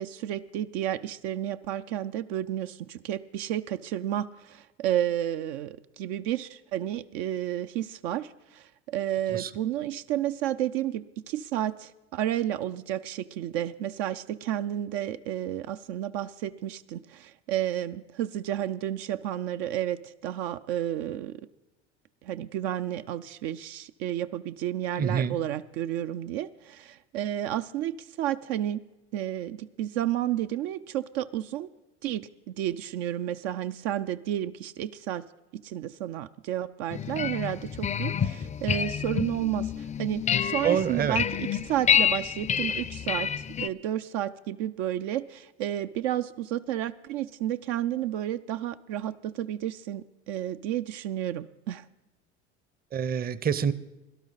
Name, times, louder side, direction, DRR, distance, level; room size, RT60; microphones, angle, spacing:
voice 1, 0.0-21.4 22.2-28.8 29.1-31.7 32.0-35.2 35.5-51.9, right 12 dB, 65° right, 10 dB, 0.6 m, -31 dB
voice 2, 25.0-25.4 40.6-41.2 52.9-53.7, right 7 dB, 25° right, 16 dB, 0.7 m, -26 dB
sound 1, 36.9-43.7, left 8 dB, 20° left, 0.4 m, -28 dB
18.0 x 12.0 x 4.0 m, 1.0 s
hypercardioid pair, 80°, 34 cm